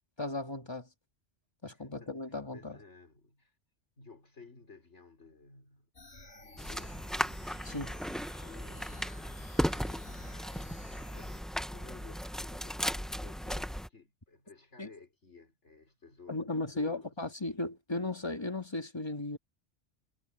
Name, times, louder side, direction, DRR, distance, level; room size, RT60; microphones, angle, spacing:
voice 1, 0.2-0.9 1.6-2.8 7.7-8.0 14.8-14.9 16.3-19.4, left 2 dB, 20° left, 2.0 m, -36 dB
voice 2, 1.7-3.6 4.0-7.3 8.4-9.4 9.7-17.2, left 4 dB, 75° left, 4.7 m, -56 dB
sound 1, 5.9-11.4, left 2 dB, 60° left, 3.5 m, -52 dB
sound 2, 6.6-13.9, equal, ahead, 0.7 m, -36 dB
omnidirectional pair, 1.2 m